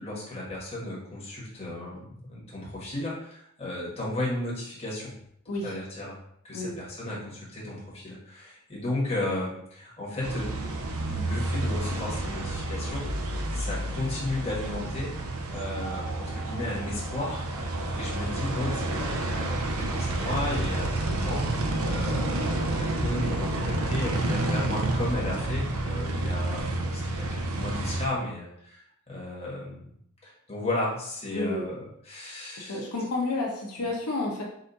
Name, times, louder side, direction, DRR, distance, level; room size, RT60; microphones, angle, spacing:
voice 1, 0.0-5.1 5.6-6.2 6.4-10.7 11.0-13.0 13.5-15.1 15.5-17.5 17.9-21.5 21.8-29.9 30.2-32.8, left 1 dB, 30° left, -5 dB, 1.5 m, -34 dB
sound 1, 10.2-28.1, right 2 dB, 65° right, 0.6 m, -29 dB
voice 2, 31.3-31.6 32.6-34.4, left 2 dB, 90° left, -2 dB, 0.9 m, -30 dB
4.1 x 2.6 x 4.0 m, 0.70 s
head